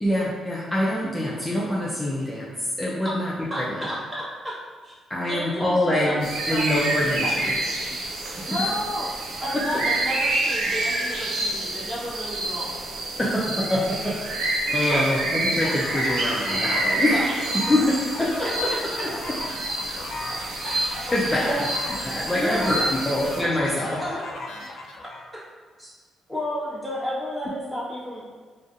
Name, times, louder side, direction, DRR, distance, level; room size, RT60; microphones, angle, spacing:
voice 1, 0.0-2.5 2.8-3.8 5.1-7.5 8.4-8.6 9.5-9.8 11.1-11.2 13.2-17.2 17.7-18.7 20.6-21.6 22.0-22.8 23.0-24.0, left 1 dB, 15° left, -7 dB, 0.5 m, -25 dB
voice 2, 3.0-4.6 4.8-4.9 5.3-6.1 6.5-7.8 8.4-9.1 9.4-12.9 14.7-15.1 17.1-17.3 18.7-19.1 21.4-21.6 22.3-23.2 24.0-24.5 25.3-25.4 25.8-25.9 26.3-28.2, equal, 10° right, -8 dB, 1.2 m, -32 dB
sound 1, 6.2-23.4, right 2 dB, 75° right, 0.4 m, -28 dB
sound 2, 15.6-25.3, left 2 dB, 70° left, 0.3 m, -36 dB
2.5 x 2.4 x 2.4 m, 1.5 s
hypercardioid pair, 50°, 0 cm